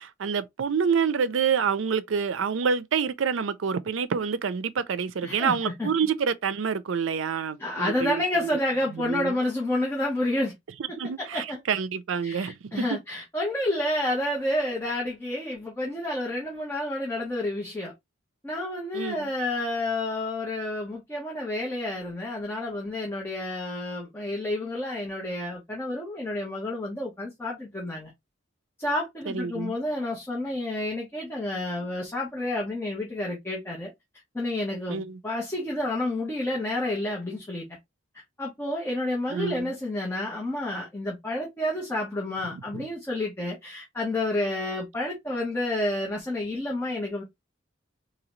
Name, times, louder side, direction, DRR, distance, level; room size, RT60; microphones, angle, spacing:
voice 1, 0.0-8.5 8.9-9.4 11.0-13.0 18.9-19.3 29.3-29.8 34.9-35.2 39.3-39.7 42.5-42.9, right 6 dB, 75° right, 0.5 m, -27 dB
voice 2, 5.2-5.9 7.6-10.5 11.2-11.6 12.2-17.9 18.4-28.1 28.8-33.9 34.3-37.7 38.4-47.2, left 1 dB, 10° left, 1.0 m, -30 dB
3.9 x 2.8 x 3.0 m
head